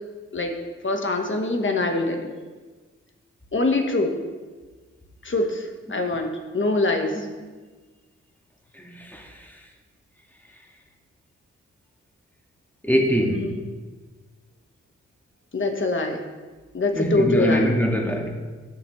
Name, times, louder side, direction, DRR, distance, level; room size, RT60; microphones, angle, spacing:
voice 1, 0.8-2.3 3.5-4.1 5.2-7.2 13.3-13.6 15.5-16.2 16.7-17.7, left 2 dB, 40° left, 3 dB, 1.4 m, -24 dB
voice 2, 8.7-9.7 12.8-13.6 16.9-18.3, equal, 5° left, 0 dB, 1.8 m, -24 dB
11.5 x 7.1 x 3.2 m, 1.4 s
cardioid pair, 50°, 29 cm